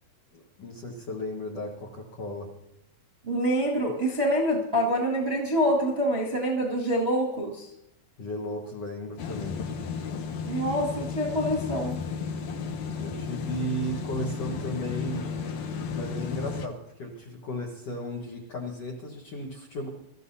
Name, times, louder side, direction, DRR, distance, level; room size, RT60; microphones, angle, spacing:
voice 1, 0.3-2.5 8.2-9.6 13.0-15.3 15.9-19.9, equal, 55° left, -2 dB, 1.9 m, -35 dB
voice 2, 3.2-7.7 10.5-12.0, equal, 25° right, -3 dB, 1.4 m, -26 dB
sound 1, 9.2-16.7, left 5 dB, 70° left, 1.7 m, -33 dB
24.0 x 14.0 x 2.8 m, 0.85 s
omnidirectional pair, 4.4 m